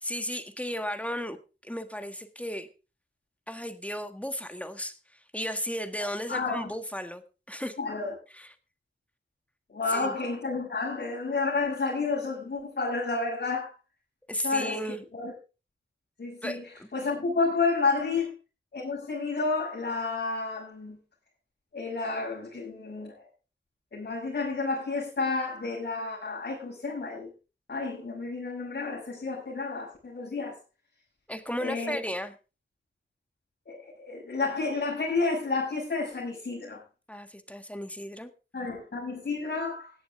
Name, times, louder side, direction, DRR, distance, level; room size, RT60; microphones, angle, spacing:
voice 1, 0.0-1.4 1.6-2.7 3.5-7.2 7.5-7.8 8.3-8.5 9.9-10.1 14.3-15.0 16.4-16.9 31.3-32.3 37.1-38.3, equal, 5° left, 8 dB, 1.7 m, -35 dB
voice 2, 6.3-6.7 7.8-8.1 9.7-13.7 14.4-14.7 15.1-15.3 16.2-18.4 18.7-21.0 21.7-23.1 23.9-27.3 27.7-30.6 31.6-32.0 33.6-36.8 38.5-39.9, left 3 dB, 60° left, -7 dB, 6.9 m, -30 dB
17.0 x 11.5 x 3.7 m, 0.32 s
wide cardioid pair, 95°, 20 cm